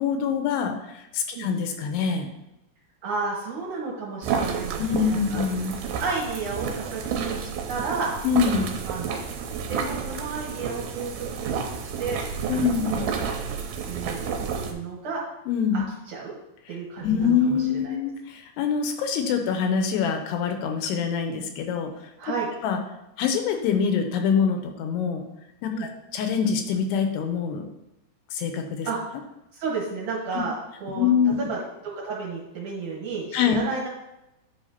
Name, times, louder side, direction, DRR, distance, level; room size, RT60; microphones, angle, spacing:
voice 1, 0.0-2.3 4.8-5.7 8.2-8.7 12.5-13.0 15.5-15.8 17.0-21.9 22.6-22.8 23.2-25.2 25.6-27.6 28.3-28.9 30.3-30.4 31.0-31.4 33.3-33.6, left 6 dB, 85° left, 5 dB, 2.7 m, -25 dB
voice 2, 3.0-5.4 6.0-8.1 8.8-9.1 9.7-13.0 13.8-15.2 15.7-16.4 16.7-18.0 22.2-22.5 25.7-25.9 28.8-29.0 29.5-30.5 30.8-31.1 31.4-31.6 32.0-33.9, right 4 dB, 65° right, -5 dB, 2.2 m, -32 dB
sound 1, 4.2-14.7, right 6 dB, 80° right, 2.4 m, -30 dB
9.8 x 5.8 x 2.8 m, 0.89 s
omnidirectional pair, 4.8 m